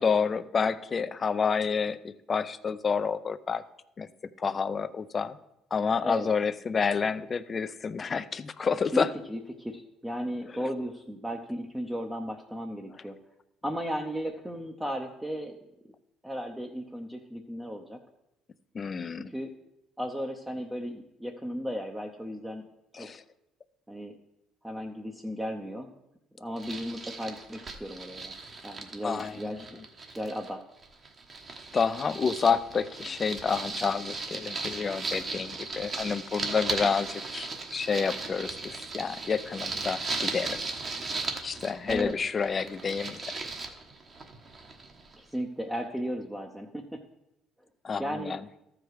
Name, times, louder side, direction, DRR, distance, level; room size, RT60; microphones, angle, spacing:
voice 1, 0.0-3.6 4.0-4.1 4.4-5.4 5.7-9.1 18.7-19.3 22.9-23.2 29.0-29.6 31.7-40.6 41.4-43.4 47.8-48.4, left 5 dB, 35° left, 14 dB, 0.5 m, -29 dB
voice 2, 8.9-13.2 13.6-15.6 16.2-18.0 19.3-19.5 20.0-22.7 22.9-23.1 23.9-24.1 24.6-25.9 26.4-28.3 28.6-29.8 30.1-30.6 41.9-42.1 45.1-47.0 48.0-48.4, equal, 5° right, 2 dB, 0.7 m, -35 dB
sound 1, 26.6-30.5 30.8-45.2, right 3 dB, 40° right, 1.2 m, -37 dB
13.5 x 4.9 x 4.7 m, 0.87 s
cardioid pair, 100°, 0 cm